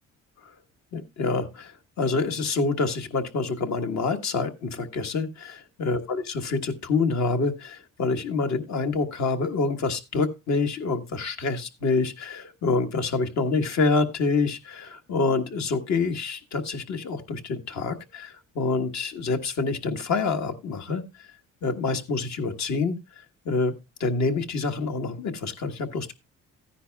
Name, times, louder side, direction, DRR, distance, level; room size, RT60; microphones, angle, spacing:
voice 1, 0.9-21.0 21.6-23.0 23.4-23.7 24.0-26.1, left 4 dB, 65° left, 5 dB, 1.5 m, -27 dB
14.0 x 10.0 x 2.2 m, 0.24 s
cardioid pair, 90°, 30 cm